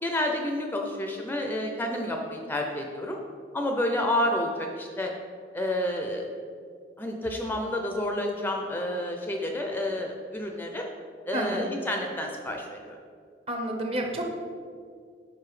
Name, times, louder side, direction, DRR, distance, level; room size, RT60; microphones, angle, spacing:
voice 1, 0.0-3.2 3.5-5.1 5.5-6.3 7.0-10.9 11.3-13.0, left 1 dB, 10° left, 2 dB, 0.4 m, -29 dB
voice 2, 11.3-11.7 13.5-14.4, right 1 dB, 35° right, 2 dB, 0.8 m, -30 dB
5.3 x 4.8 x 4.8 m, 2.1 s
head